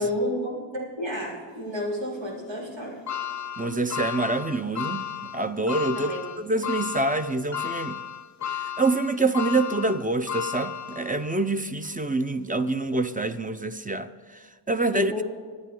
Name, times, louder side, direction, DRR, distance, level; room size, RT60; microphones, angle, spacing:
voice 1, 0.0-3.0 5.9-6.3 14.9-15.2, left 1 dB, 70° right, 4.1 m, -30 dB
sound 1, 3.1-11.4 11.9-12.0 13.2-13.3, left 9 dB, 40° left, 0.6 m, -34 dB
voice 2, 3.6-8.0 8.5-15.1, right 2 dB, 15° right, 0.7 m, -26 dB
25.0 x 9.5 x 3.9 m
cardioid pair, 60°, 47 cm